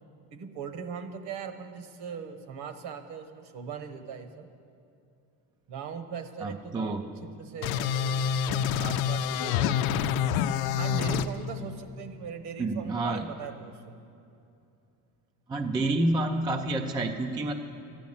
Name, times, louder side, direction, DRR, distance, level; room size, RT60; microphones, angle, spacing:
voice 1, 0.3-4.5 5.7-10.2 10.8-14.0, right 6 dB, 55° right, 9 dB, 1.2 m, -40 dB
voice 2, 6.4-7.1 12.6-13.3 15.5-17.5, right 2 dB, 10° right, 5 dB, 0.3 m, -28 dB
sound 1, 7.6-11.3, left 8 dB, 90° left, 0.7 m, -27 dB
12.0 x 10.5 x 7.2 m, 2.6 s
cardioid pair, 140°, 47 cm